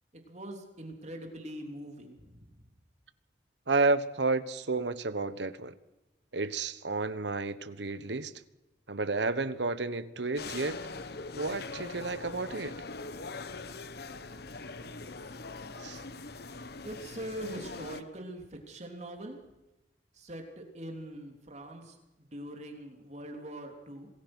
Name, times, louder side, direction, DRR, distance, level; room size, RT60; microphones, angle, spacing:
voice 1, 0.1-2.6 16.8-19.4 20.1-24.1, right 1 dB, 40° right, 3.5 m, -43 dB
voice 2, 3.7-5.7 6.3-8.3 8.9-10.8 11.4-12.8 15.8-16.0, right 3 dB, 80° right, 1.3 m, -31 dB
sound 1, 10.4-18.0, left 3 dB, 65° left, 1.3 m, -42 dB
27.0 x 19.5 x 6.3 m
head